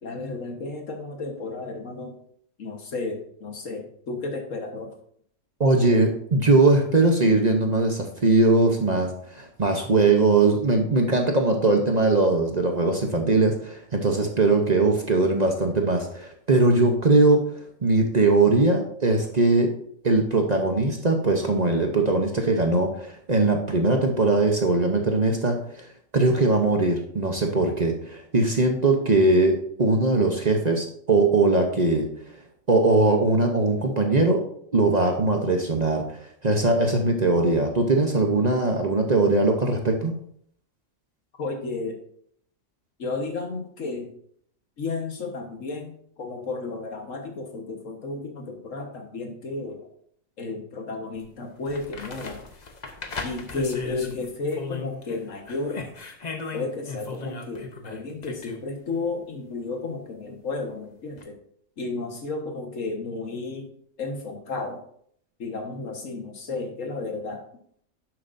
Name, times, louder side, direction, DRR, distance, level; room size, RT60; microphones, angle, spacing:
voice 1, 0.0-2.2 2.6-4.9 41.4-42.0 43.0-44.1 44.8-49.8 50.4-52.4 53.2-55.8 56.5-61.4 61.8-63.7 64.0-64.8 65.4-67.4, left 3 dB, 70° left, 3 dB, 1.7 m, -33 dB
voice 2, 5.6-17.4 17.8-19.7 20.0-25.9 26.1-32.1 32.7-34.4 34.7-36.0 36.4-40.1, right 2 dB, 35° right, 3 dB, 0.9 m, -21 dB
sound 1, 51.2-51.3 51.7-55.2 55.5-58.6 61.2-61.3, left 3 dB, 35° left, 0.9 m, -36 dB
10.5 x 7.7 x 2.6 m, 0.64 s
omnidirectional pair, 1.4 m